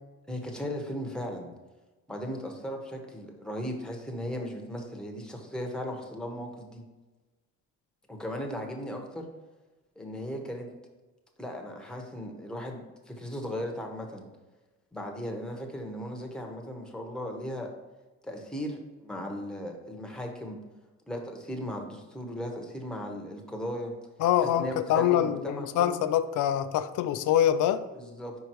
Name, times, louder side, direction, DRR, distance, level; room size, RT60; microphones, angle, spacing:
voice 1, 0.3-1.5 2.1-6.8 8.1-9.3 10.0-10.7 11.4-14.3 14.9-17.7 18.2-20.6 21.1-23.9 24.4-26.0 27.9-28.4, equal, 5° left, 1 dB, 1.2 m, -37 dB
voice 2, 24.2-27.8, left 11 dB, 80° left, 12 dB, 0.5 m, -25 dB
5.1 x 4.6 x 4.6 m, 1.2 s
cardioid pair, 90°, 30 cm